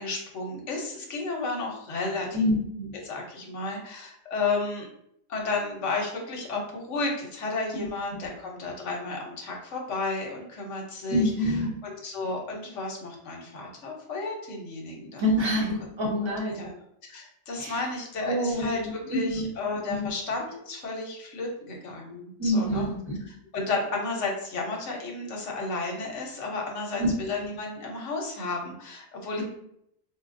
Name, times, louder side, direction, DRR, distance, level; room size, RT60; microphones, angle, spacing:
voice 1, 0.0-2.3 3.0-4.9 5.3-15.5 16.2-22.9 23.2-29.4, left 3 dB, 60° left, 0 dB, 1.0 m, -33 dB
voice 2, 2.3-2.9 7.8-7.9 11.1-11.8 15.2-16.6 17.6-17.8 18.3-19.5 19.9-20.1 22.4-23.2 27.0-27.1, equal, 20° right, -5 dB, 0.9 m, -26 dB
4.4 x 2.4 x 2.5 m, 0.73 s
omnidirectional pair, 1.5 m